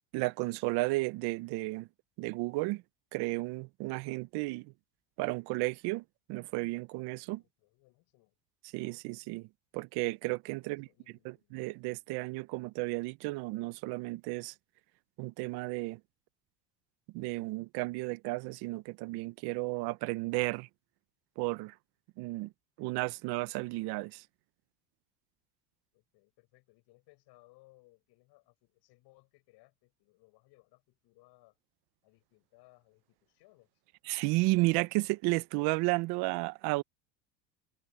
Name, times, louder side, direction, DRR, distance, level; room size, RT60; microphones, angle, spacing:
voice 1, 0.1-1.9 2.2-2.8 3.1-4.7 5.2-6.0 6.3-7.4 8.7-9.5 9.7-10.9 11.2-14.5 15.2-16.0 17.1-20.7 21.4-21.7 22.2-22.5 22.8-24.2 34.1-36.8, right 23 dB, 65° right, 0.8 m, -33 dB
voice 2, 7.4-8.3 10.6-11.6 25.9-31.6 32.0-33.7, left 22 dB, 65° left, 7.9 m, -64 dB
supercardioid pair, 110°, 42 cm